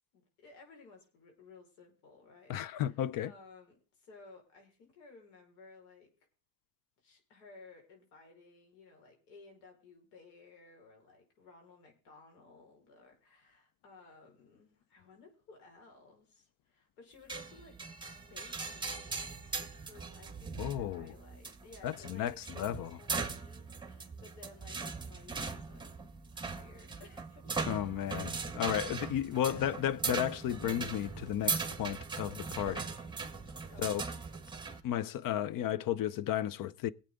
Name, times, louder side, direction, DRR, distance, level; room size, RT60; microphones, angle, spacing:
voice 1, 0.1-6.1 7.0-17.8 18.1-25.9 26.3-27.9 28.7-29.7 32.7-33.3 33.7-34.2, left 3 dB, 80° left, 5.4 m, -57 dB
voice 2, 2.5-3.3 20.6-21.1 21.8-22.9 27.7-32.8 33.8-34.0 34.8-36.9, left 11 dB, 45° left, 0.8 m, -33 dB
sound 1, 17.3-34.8, right 4 dB, 10° right, 1.8 m, -40 dB
20.0 x 8.3 x 3.8 m
supercardioid pair, 85°, 45 cm